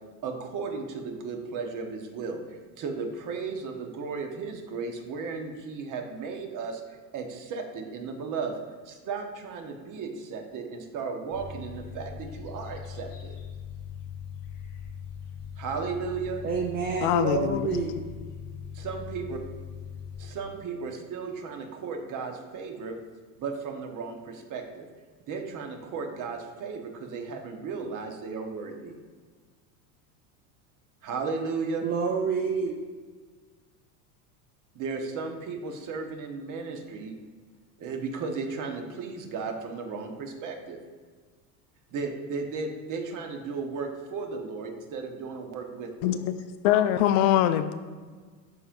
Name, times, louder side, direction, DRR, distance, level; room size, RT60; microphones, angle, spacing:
voice 1, 0.2-8.6 8.9-13.4 15.6-16.4 18.7-19.4 20.2-23.0 23.4-24.8 25.3-28.9 31.0-31.9 34.7-37.1 37.8-40.8 41.9-46.3, right 4 dB, 40° right, 4 dB, 1.2 m, -35 dB
sound 1, 11.3-20.3, left 7 dB, 75° left, 1.6 m, -41 dB
voice 2, 16.4-18.0 31.8-32.8, right 5 dB, 20° right, 2 dB, 0.3 m, -28 dB
voice 3, 17.0-17.8 46.0-46.3 46.6-47.7, left 11 dB, 55° left, 11 dB, 0.5 m, -23 dB
12.0 x 4.4 x 2.6 m, 1.5 s
hypercardioid pair, 95°, 47 cm